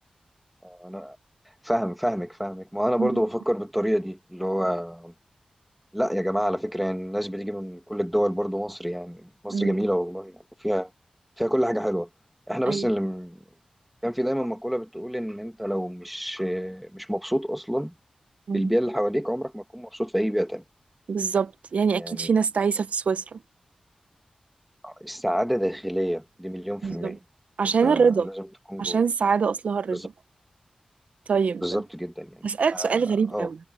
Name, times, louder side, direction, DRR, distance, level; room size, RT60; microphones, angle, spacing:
voice 1, 0.6-1.2 1.6-5.1 5.9-10.9 11.4-12.1 12.5-13.4 14.0-17.9 18.5-20.6 22.0-22.3 24.8-27.2 27.8-29.0 29.9-30.1 31.6-32.5 32.7-33.0 33.3-33.5, equal, ahead, 2.1 m, -28 dB
voice 2, 21.1-23.4 26.8-27.2 27.6-28.3 28.8-30.0 31.3-31.8 32.4-33.6, right 5 dB, 80° right, 0.8 m, -24 dB
cardioid pair, 60°, 2 cm